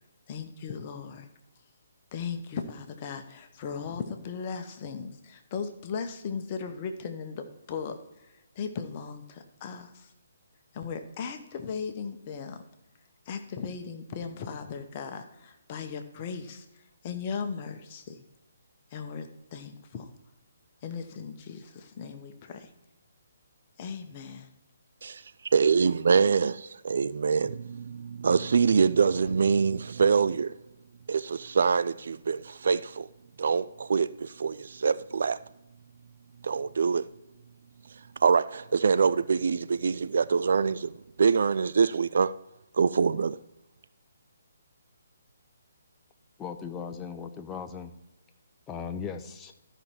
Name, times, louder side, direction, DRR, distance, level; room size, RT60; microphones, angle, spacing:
voice 1, 0.3-1.3 2.1-8.0 8.5-10.1 10.7-12.6 13.3-16.7 17.0-18.2 18.9-20.1 20.8-22.7 23.8-24.5, left 6 dB, 30° left, 1.0 m, -37 dB
voice 2, 25.5-30.5 31.1-33.1 33.4-35.4 36.4-37.1 38.2-40.9 41.2-42.3 42.7-43.4, right 5 dB, 55° right, 0.3 m, -24 dB
voice 3, 46.4-47.9 48.7-49.5, left 6 dB, 15° left, 0.6 m, -37 dB
13.0 x 5.5 x 4.6 m
figure-of-eight pair, 135°, 0 cm